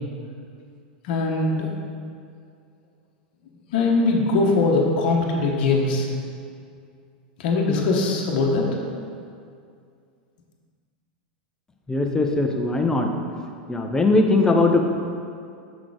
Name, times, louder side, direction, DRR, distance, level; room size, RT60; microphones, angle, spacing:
voice 1, 1.0-1.7 3.7-6.1 7.4-8.7, left 3 dB, 60° left, -1 dB, 1.0 m, -21 dB
voice 2, 11.9-13.1 13.7-14.9, left 2 dB, 10° left, 2 dB, 0.7 m, -20 dB
6.2 x 3.9 x 4.8 m, 2.3 s
hypercardioid pair, 100°, 5 cm